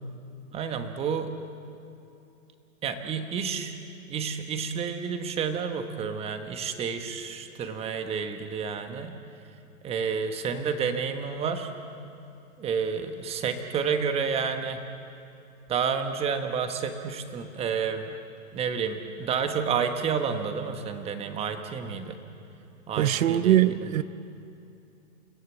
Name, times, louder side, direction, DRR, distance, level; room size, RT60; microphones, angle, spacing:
voice 1, 0.5-1.3 2.8-3.7 4.1-9.1 9.8-11.7 12.6-14.8 15.7-18.1 18.5-22.2 22.9-23.9, right 6 dB, 15° right, 7 dB, 1.2 m, -30 dB
voice 2, 23.0-24.0, right 12 dB, 75° right, 14 dB, 0.9 m, -22 dB
29.5 x 16.5 x 7.4 m, 2.7 s
hypercardioid pair, 155°, 40 cm